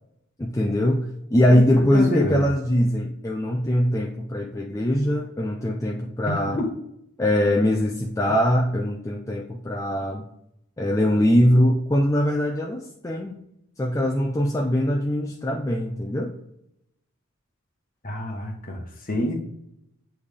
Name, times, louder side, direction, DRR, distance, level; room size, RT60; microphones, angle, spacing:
voice 1, 0.4-1.1 1.3-6.6 7.2-10.2 10.8-13.4 13.8-16.3, equal, 15° left, 0 dB, 0.4 m, -22 dB
voice 2, 1.5-2.5 6.3-6.7 18.0-19.3, left 1 dB, 40° left, 2 dB, 1.2 m, -27 dB
8.5 x 3.4 x 3.5 m, 0.78 s
head